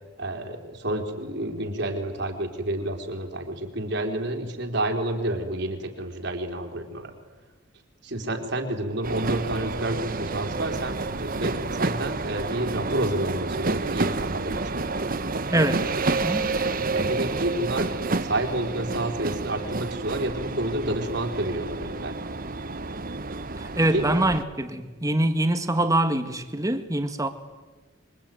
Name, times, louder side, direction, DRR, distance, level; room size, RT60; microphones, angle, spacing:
voice 1, 0.2-7.1 8.0-14.8 16.9-17.9 18.2-22.2 23.9-24.1, right 1 dB, 60° right, 4.0 m, -29 dB
sound 1, 9.0-24.4, right 3 dB, 45° right, 1.2 m, -29 dB
voice 2, 15.5-16.6 23.6-27.3, right 1 dB, 15° right, 1.8 m, -24 dB
26.5 x 24.0 x 9.3 m
head